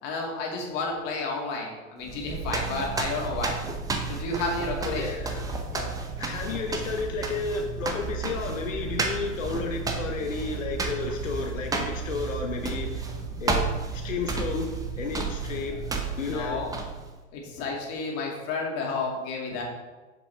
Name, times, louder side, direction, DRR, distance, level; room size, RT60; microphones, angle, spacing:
voice 1, 0.0-3.6 4.1-5.2 5.7-5.9 16.0-16.7 17.3-19.6, left 3 dB, 40° left, -1 dB, 2.2 m, -31 dB
sound 1, 2.0-17.2, right 4 dB, 10° right, 0.6 m, -32 dB
voice 2, 4.8-5.6 6.2-13.1 13.4-13.7 13.9-14.7 15.0-15.8 16.2-16.6, left 5 dB, 90° left, 3 dB, 0.9 m, -32 dB
7.2 x 6.8 x 3.4 m, 1.2 s
hypercardioid pair, 115°, 38 cm